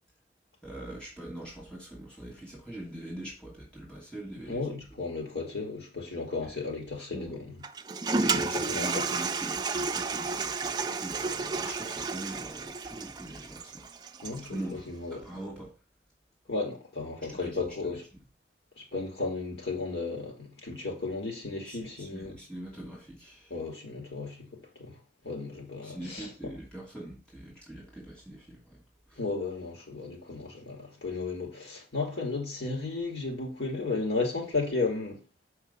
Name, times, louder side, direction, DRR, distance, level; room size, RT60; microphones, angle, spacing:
voice 1, 0.6-4.7 6.4-6.5 7.1-7.4 8.2-13.9 14.3-14.8 15.1-15.7 17.3-17.6 18.1-18.2 21.6-23.6 25.8-28.8 29.1-29.2, right 1 dB, 5° left, 2.7 m, -42 dB
voice 2, 4.5-7.6 8.3-9.0 14.2-15.2 16.5-18.0 18.8-22.4 23.5-24.4 24.8-24.9 25.2-26.5 29.2-35.2, left 3 dB, 80° left, 3.0 m, -34 dB
Toilet flush, 7.6-14.6, right 4 dB, 25° right, 0.4 m, -32 dB
7.0 x 4.8 x 5.7 m
head